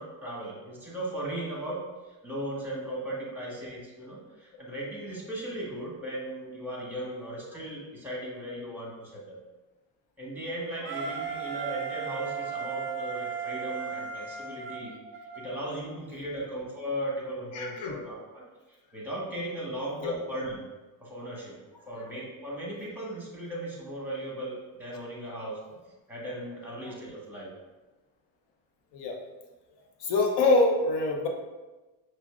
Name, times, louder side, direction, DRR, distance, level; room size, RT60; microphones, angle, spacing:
voice 1, 0.0-1.8 2.2-9.4 10.2-14.9 15.3-20.6 21.0-21.5 21.9-25.6 26.1-27.5, right 1 dB, 5° right, -4 dB, 1.4 m, -37 dB
Wind instrument woodwind instrument, 10.8-15.6, right 6 dB, 30° right, 0.4 m, -35 dB
voice 2, 17.5-17.9 20.0-20.2 26.8-26.9 28.9-29.2 30.0-31.3, left 2 dB, 55° left, 1 dB, 0.9 m, -25 dB
5.7 x 2.2 x 2.4 m, 1.1 s
supercardioid pair, 80°, 50 cm